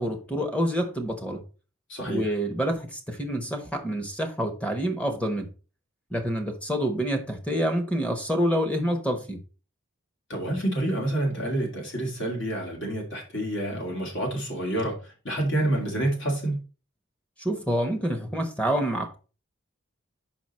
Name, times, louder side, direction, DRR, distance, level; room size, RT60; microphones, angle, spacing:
voice 1, 0.0-1.4 2.1-5.5 6.1-9.4 17.4-19.2, equal, 5° left, 1.0 m, -27 dB
voice 2, 1.9-2.3 10.3-16.6, right 1 dB, 65° left, 2.5 m, -28 dB
5.9 x 5.6 x 4.3 m
head